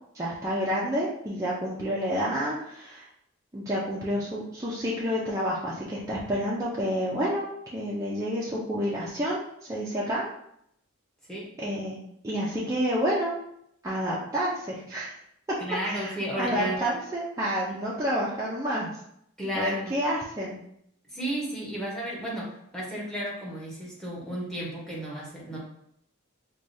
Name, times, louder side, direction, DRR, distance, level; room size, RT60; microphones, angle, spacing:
voice 1, 0.1-3.1 3.5-9.4 9.7-10.3 11.6-12.0 12.2-13.3 13.8-15.1 15.9-18.9 19.6-20.6, equal, 15° right, -7 dB, 0.4 m, -29 dB
voice 2, 15.6-16.8 19.4-20.0 21.1-25.6, right 1 dB, 5° left, -5 dB, 0.9 m, -33 dB
4.7 x 2.3 x 2.6 m, 0.73 s
head